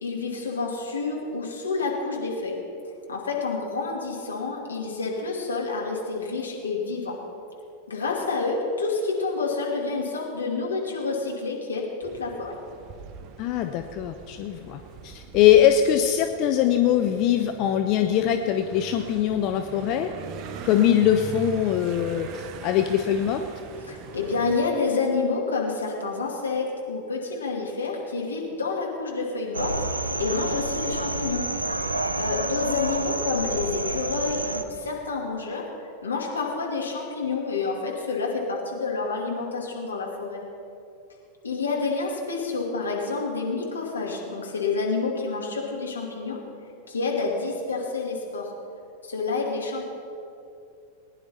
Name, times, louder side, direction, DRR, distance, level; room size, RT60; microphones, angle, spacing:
voice 1, 0.0-2.6 3.1-7.2 7.9-12.5 23.9-31.4 32.2-35.6 36.0-40.4 41.4-46.4 46.9-48.5 49.0-49.9, left 4 dB, 75° left, -1 dB, 2.3 m, -28 dB
sound 1, 12.0-24.6, right 7 dB, 40° right, 0.7 m, -42 dB
voice 2, 13.4-20.1 20.6-23.4, left 10 dB, 40° left, 6 dB, 0.6 m, -22 dB
sound 2, 29.5-34.6, right 2 dB, 80° right, 0.7 m, -29 dB
19.5 x 10.0 x 4.2 m, 2.6 s
figure-of-eight pair, 90°, 0 cm